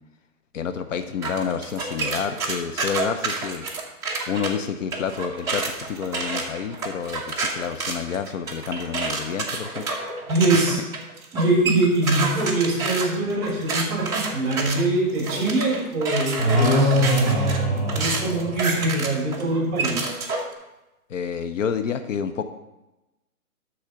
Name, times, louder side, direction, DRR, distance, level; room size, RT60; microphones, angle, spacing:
voice 1, 0.5-3.7 4.3-9.8 21.1-22.4, left 7 dB, 55° left, 9 dB, 0.8 m, -29 dB
sound 1, 1.2-4.5 4.9-20.5, right 3 dB, 5° right, 0.9 m, -29 dB
voice 2, 10.3-10.8 11.3-17.1 17.9-20.2, right 2 dB, 30° right, -2 dB, 3.0 m, -23 dB
sound 2, 16.4-18.9, equal, 25° left, 3.2 m, -22 dB
12.5 x 4.2 x 6.7 m, 0.98 s
hypercardioid pair, 160°, 45 cm